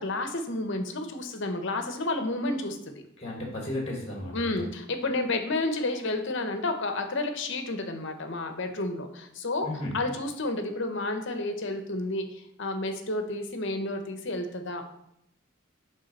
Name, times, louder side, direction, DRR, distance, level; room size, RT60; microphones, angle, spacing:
voice 1, 0.0-3.0 4.3-9.7 9.9-14.9, left 2 dB, 55° left, 6 dB, 0.9 m, -31 dB
voice 2, 3.2-4.5 9.6-9.9, left 1 dB, 25° left, 0 dB, 1.6 m, -34 dB
6.7 x 3.7 x 5.3 m, 0.76 s
head